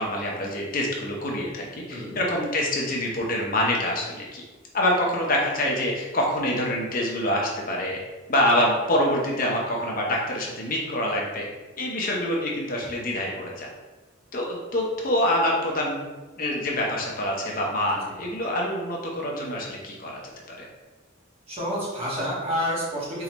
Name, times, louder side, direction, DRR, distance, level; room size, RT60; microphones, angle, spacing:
voice 1, 0.0-4.4 4.7-8.0 8.3-11.5 11.8-13.7 14.3-20.2 20.5-20.7, left 1 dB, 45° left, -2 dB, 0.7 m, -26 dB
voice 2, 1.9-2.2 21.5-23.2, equal, 30° right, -7 dB, 1.4 m, -29 dB
4.1 x 3.7 x 3.0 m, 1.2 s
head